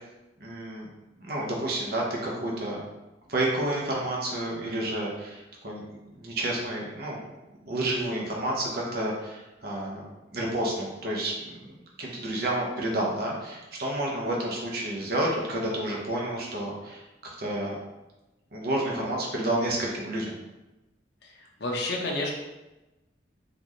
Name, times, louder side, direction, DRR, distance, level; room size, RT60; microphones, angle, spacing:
voice 1, 0.4-0.9 1.2-2.8 3.3-5.9 6.2-7.2 7.6-10.0 10.3-11.7 12.0-17.8 18.5-20.3, right 1 dB, 55° right, -3 dB, 0.8 m, -30 dB
voice 2, 21.2-22.3, left 2 dB, 65° left, -2 dB, 0.7 m, -30 dB
3.9 x 2.6 x 3.0 m, 1.0 s
head